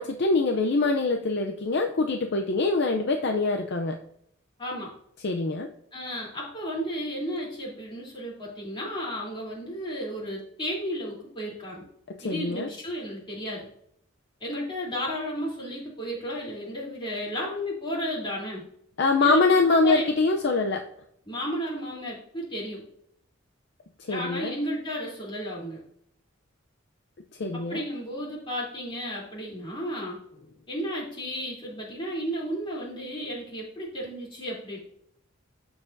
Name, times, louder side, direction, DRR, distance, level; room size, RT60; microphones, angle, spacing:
voice 1, 0.0-4.0 5.2-5.7 12.2-12.7 19.0-20.8 24.0-24.5 27.4-27.8, left 3 dB, 55° left, 4 dB, 0.5 m, -24 dB
voice 2, 4.6-4.9 5.9-11.8 12.2-13.7 14.4-18.6 19.2-20.1 21.3-22.8 24.1-25.8 27.5-30.2 30.7-34.8, equal, 25° left, -5 dB, 3.1 m, -33 dB
13.0 x 4.8 x 2.6 m, 0.70 s
head